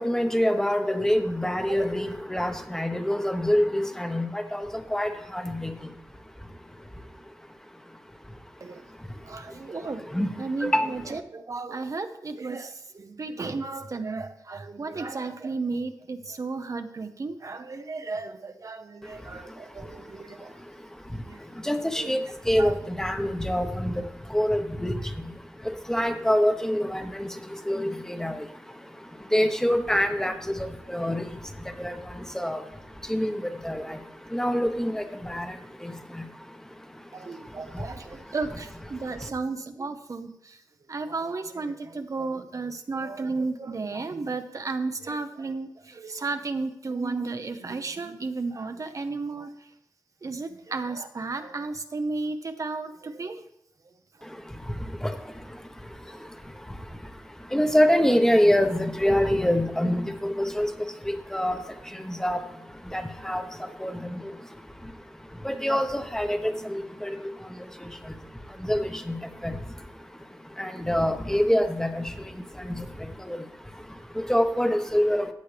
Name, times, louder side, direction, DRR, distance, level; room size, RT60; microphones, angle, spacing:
voice 1, 0.0-4.7 4.9-5.7 10.1-10.3 10.6-10.9 21.7-22.2 22.5-23.9 24.3-24.9 25.9-27.3 27.7-28.3 29.3-30.3 30.9-31.2 31.8-31.9 32.3-32.6 33.1-33.3 33.6-33.8 34.3-35.0 35.3-35.5 35.8-35.9 57.5-60.7 61.3-61.6 62.1-62.4 62.9-63.4 63.8-64.1 65.4-67.2 68.7-69.2 69.4-69.5 70.6-72.1 72.7-72.8 73.3-73.4 74.3-75.3, equal, 5° left, 6 dB, 1.0 m, -25 dB
voice 2, 9.2-10.0 10.4-20.5 21.3-21.4 22.0-22.1 22.6-22.8 37.1-40.6 40.9-49.5 50.2-53.4, right 3 dB, 50° right, 8 dB, 0.7 m, -33 dB
14.5 x 8.5 x 3.3 m, 0.81 s
wide cardioid pair, 100°, 7 cm